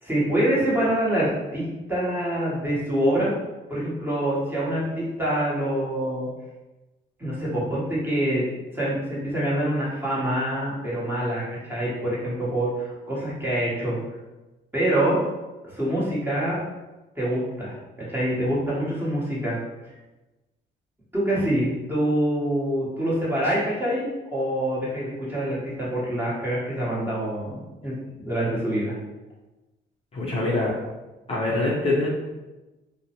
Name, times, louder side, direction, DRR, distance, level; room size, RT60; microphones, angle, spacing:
voice 1, 0.0-3.3 3.7-6.3 7.2-8.4 8.7-14.0 14.7-15.2 15.6-16.6 17.1-17.8 18.1-19.6 19.8-19.9 21.1-27.9 28.2-29.0, right 1 dB, 10° right, -8 dB, 1.1 m, -25 dB
voice 2, 30.1-30.7 31.3-32.1, left 2 dB, 30° left, -6 dB, 0.5 m, -24 dB
2.5 x 2.0 x 2.8 m, 1.1 s
cardioid pair, 90°, 20 cm